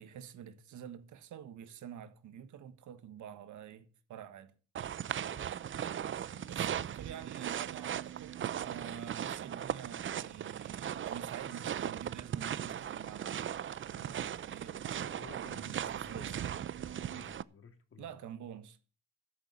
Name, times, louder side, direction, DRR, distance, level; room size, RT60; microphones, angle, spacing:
voice 1, 0.0-4.5 6.5-13.5 13.9-14.9 15.5-16.5 18.0-18.9, right 9 dB, 75° right, 1.5 m, -48 dB
chuze vysokym snehem, 4.8-17.4, right 9 dB, 40° right, 0.6 m, -38 dB
voice 2, 5.3-5.7 6.3-6.8 15.0-16.4 16.8-18.3, left 6 dB, 45° left, 2.6 m, -56 dB
13.0 x 6.9 x 8.2 m
cardioid pair, 90°, 30 cm